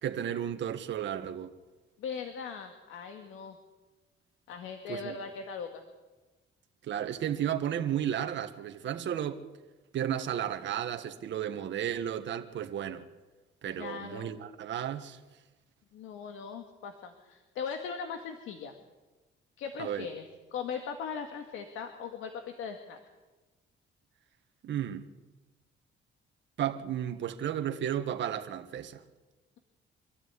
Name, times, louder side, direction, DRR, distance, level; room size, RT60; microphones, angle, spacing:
voice 1, 0.0-1.5 4.9-5.2 6.8-9.4 9.9-13.0 13.6-15.2 19.8-20.1 24.6-25.1 26.6-29.0, right 10 dB, 65° right, 1.6 m, -33 dB
voice 2, 2.0-3.6 4.5-5.8 13.8-14.3 15.9-18.7 19.6-20.2 20.5-23.0, left 6 dB, 90° left, 2.0 m, -39 dB
25.5 x 13.5 x 9.7 m
cardioid pair, 90°, 20 cm